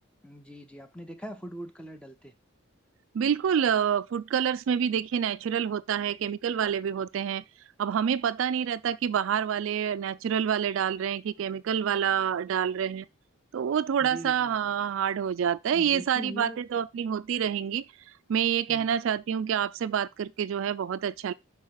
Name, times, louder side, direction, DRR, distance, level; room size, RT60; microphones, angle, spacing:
voice 1, 0.2-2.3 14.0-14.6 15.7-16.6 18.7-18.9, equal, 5° left, 0.7 m, -41 dB
voice 2, 3.1-7.4 7.8-13.1 13.5-17.8 18.3-21.3, right 8 dB, 70° right, 0.3 m, -27 dB
5.7 x 4.2 x 4.7 m
head